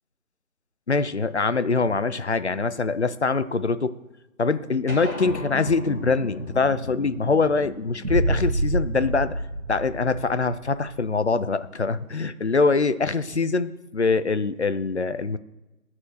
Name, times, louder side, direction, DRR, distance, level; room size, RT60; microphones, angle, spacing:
voice 1, 0.9-3.9 4.4-9.4 9.7-15.4, left 4 dB, 50° left, 13 dB, 0.5 m, -24 dB
sound 1, 4.9-9.6, left 1 dB, 10° left, 1.0 m, -37 dB
sound 2, 8.0-11.0, right 1 dB, 80° right, 1.4 m, -27 dB
12.5 x 4.3 x 6.4 m, 1.0 s
figure-of-eight pair, 160°, 44 cm